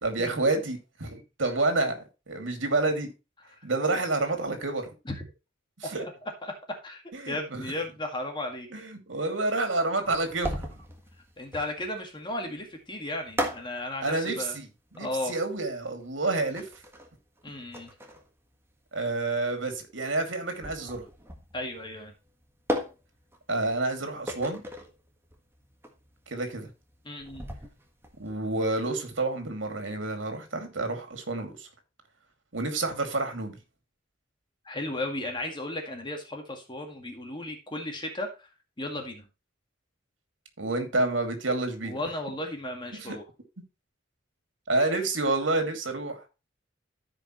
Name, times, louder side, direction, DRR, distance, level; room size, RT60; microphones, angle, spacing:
voice 1, 0.0-2.0 2.3-3.1 3.6-4.9 5.8-6.0 7.1-7.6 8.7-10.7 14.0-14.7 14.9-16.7 18.9-21.0 23.5-24.6 26.3-26.7 28.2-31.7 32.5-33.6 40.6-42.0 42.9-43.2 44.7-46.2, right 2 dB, 80° right, 2.5 m, -29 dB
voice 2, 6.8-8.7 11.4-14.6 15.0-15.3 17.4-17.9 21.5-22.1 27.0-27.5 34.7-38.5 38.8-39.3 41.8-43.2, left 1 dB, 25° left, 2.0 m, -35 dB
sound 1, 10.0-28.3, equal, 15° right, 1.6 m, -38 dB
14.5 x 5.2 x 3.1 m
head